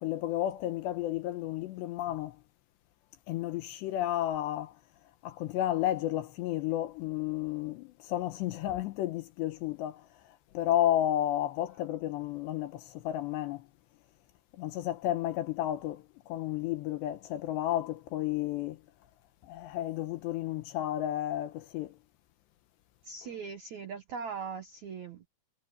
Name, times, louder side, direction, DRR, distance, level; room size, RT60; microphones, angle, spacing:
voice 1, 0.0-2.4 3.3-4.8 5.2-13.7 14.6-18.8 19.4-22.0, left 13 dB, 75° left, 2.9 m, -32 dB
voice 2, 23.0-25.3, right 5 dB, 75° right, 1.6 m, -40 dB
omnidirectional pair, 5.6 m